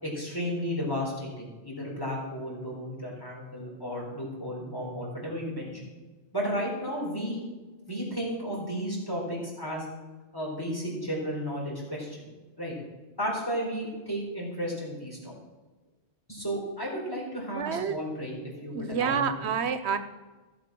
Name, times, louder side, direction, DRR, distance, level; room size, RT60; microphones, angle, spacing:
voice 1, 0.0-5.8 6.3-7.4 7.9-9.9 10.3-12.2 12.6-12.7 13.2-15.3 16.3-19.5, equal, 20° left, -3 dB, 4.5 m, -33 dB
voice 2, 17.5-17.9 18.7-20.0, right 6 dB, 90° right, 10 dB, 1.1 m, -28 dB
16.0 x 6.8 x 6.1 m, 1.2 s
omnidirectional pair, 1.1 m